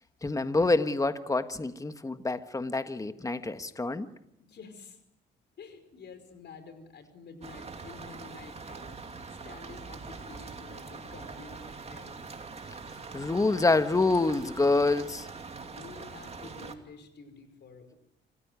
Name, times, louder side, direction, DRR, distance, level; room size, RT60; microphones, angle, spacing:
voice 1, 0.2-4.1 13.1-15.3, left 3 dB, 15° left, 10 dB, 1.4 m, -27 dB
voice 2, 4.5-5.0 5.6-12.2 15.6-17.9, left 4 dB, 60° left, 9 dB, 5.2 m, -49 dB
sound 1, 7.4-16.7, right 4 dB, 30° right, 2.6 m, -43 dB
27.0 x 15.5 x 9.6 m, 0.83 s
cardioid pair, 90°, 20 cm